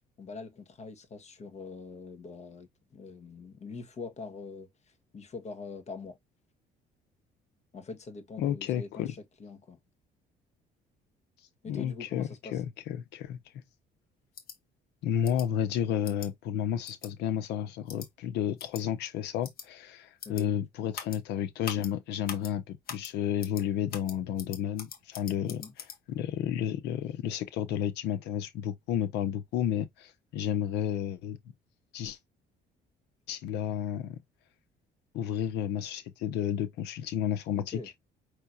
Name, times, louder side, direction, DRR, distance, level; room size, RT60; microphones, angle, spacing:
voice 1, 0.2-4.7 5.1-6.2 7.7-9.8 11.6-12.6 20.2-20.5 25.5-25.7 37.5-37.9, left 4 dB, 40° left, 1.5 m, -43 dB
voice 2, 8.4-9.1 11.6-13.4 15.0-25.6 26.1-31.4 31.9-32.2 33.3-34.2 35.1-37.8, left 10 dB, 85° left, 1.1 m, -31 dB
sound 1, 14.3-14.6 15.2-15.5 16.0-16.3 16.8-17.1 17.9-18.1 18.6-18.8 19.4-19.7 20.2-20.4 20.9-21.2 21.6-21.9 22.3-22.5 22.9-23.1 23.4-23.6 23.9-26.0, left 7 dB, 60° left, 1.4 m, -42 dB
5.8 x 3.2 x 2.7 m
cardioid pair, 110°, 17 cm